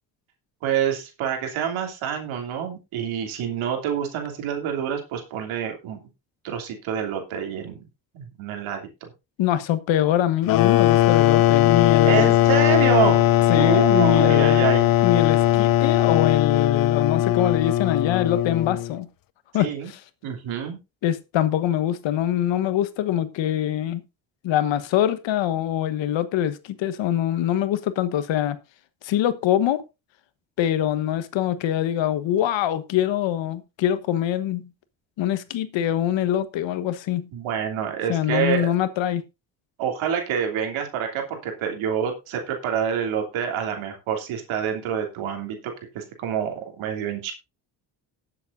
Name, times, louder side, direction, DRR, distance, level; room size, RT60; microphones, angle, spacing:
voice 1, 0.6-6.0 6.4-7.8 8.1-9.1 12.0-13.2 13.5-14.8 19.5-19.9 20.2-20.8 35.8-35.9 37.3-38.7 39.8-45.6 45.9-47.3, right 8 dB, 70° right, 2.9 m, -27 dB
voice 2, 9.4-12.4 13.5-14.7 15.0-19.1 19.5-20.0 21.0-24.0 24.4-28.6 29.0-29.8 30.6-34.7 35.2-37.3 38.1-39.2, left 11 dB, 65° left, 1.3 m, -24 dB
sound 1, 10.5-18.9, left 14 dB, 45° left, 0.6 m, -19 dB
19.0 x 7.6 x 2.6 m
hypercardioid pair, 60°, 49 cm